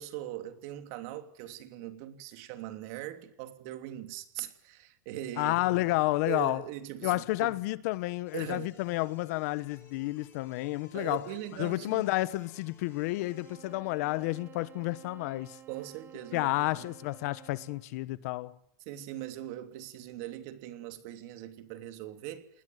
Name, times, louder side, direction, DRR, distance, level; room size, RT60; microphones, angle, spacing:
voice 1, 0.0-5.5 6.3-7.5 8.3-8.7 10.9-12.1 15.7-16.9 18.9-22.5, right 13 dB, 45° right, 3.1 m, -40 dB
voice 2, 5.4-6.6 7.0-11.3 11.6-15.6 16.3-18.5, left 19 dB, 50° left, 1.2 m, -30 dB
sound 1, 8.2-13.6, left 6 dB, 20° left, 7.2 m, -59 dB
sound 2, 13.1-18.0, right 9 dB, 20° right, 1.7 m, -53 dB
29.0 x 20.5 x 9.4 m
supercardioid pair, 160°, 11 cm